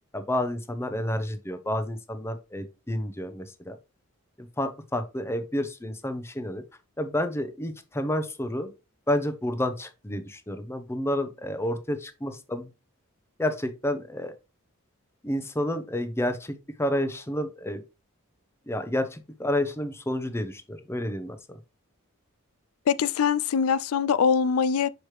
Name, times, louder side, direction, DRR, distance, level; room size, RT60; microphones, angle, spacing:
voice 1, 0.1-3.8 4.4-6.6 7.0-8.7 9.1-12.7 13.4-14.3 15.2-17.8 18.7-21.6, left 1 dB, 10° left, 0.7 m, -30 dB
voice 2, 22.9-24.9, left 6 dB, 85° left, 0.4 m, -23 dB
6.1 x 4.9 x 3.1 m
head